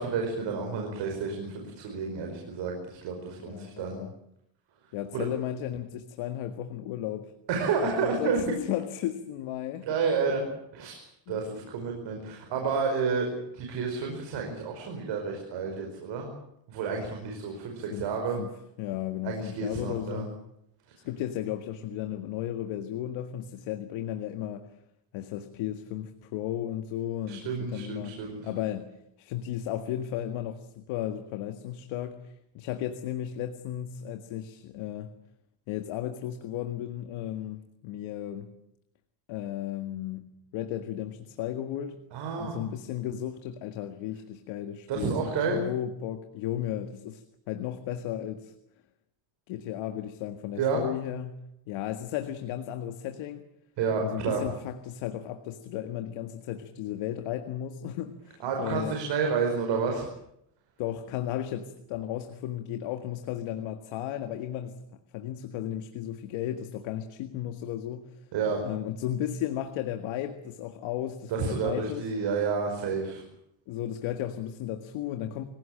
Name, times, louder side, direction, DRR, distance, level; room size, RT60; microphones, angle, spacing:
voice 1, 0.0-4.0 5.1-5.3 7.5-8.4 9.9-10.5 10.7-11.0 11.3-13.3 13.5-16.3 16.7-18.4 19.2-20.2 27.3-28.5 42.1-42.6 44.9-45.6 50.6-50.8 53.8-54.4 58.4-60.1 68.3-68.6 71.3-73.2, right 5 dB, 60° right, 2 dB, 5.5 m, -30 dB
voice 2, 3.4-4.1 4.9-7.3 7.8-9.9 11.3-11.4 17.9-18.1 18.4-18.5 18.8-20.3 21.0-24.7 25.1-28.1 28.4-28.9 29.2-35.1 35.7-38.5 39.3-42.0 42.4-48.5 49.5-51.4 51.7-53.5 54.0-58.9 60.8-64.8 65.1-68.3 68.6-72.1 73.7-75.4, left 11 dB, 75° left, 7 dB, 1.9 m, -34 dB
26.0 x 17.0 x 8.9 m, 0.79 s
cardioid pair, 155°, 49 cm